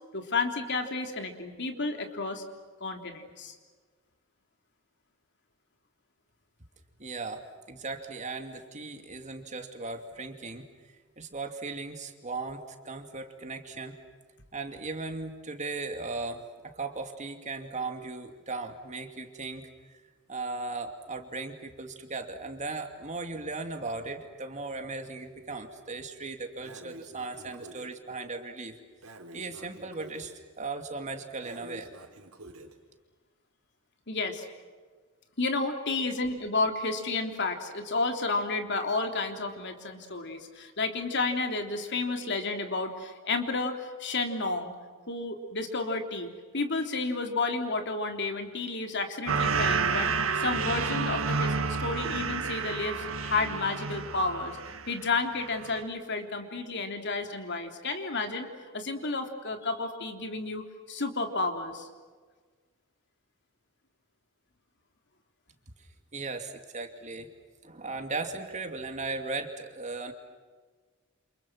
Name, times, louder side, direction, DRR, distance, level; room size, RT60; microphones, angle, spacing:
voice 1, 0.1-2.4 2.8-3.5 34.1-34.4 35.4-44.7 45.1-54.6 54.9-58.5 58.7-61.9, left 3 dB, 55° left, 5 dB, 3.3 m, -31 dB
voice 2, 7.0-10.7 11.2-14.0 14.5-20.0 20.3-28.8 29.3-31.9 66.1-67.3 67.6-70.1, right 3 dB, 35° right, 5 dB, 2.6 m, -37 dB
Breathing, 26.6-27.9 29.0-30.3 31.4-32.8, right 1 dB, 90° right, 4.2 m, -48 dB
sound 1, 49.3-55.0 55.4-55.8, right 5 dB, 70° right, 2.0 m, -30 dB
29.5 x 28.5 x 6.2 m, 1.5 s
head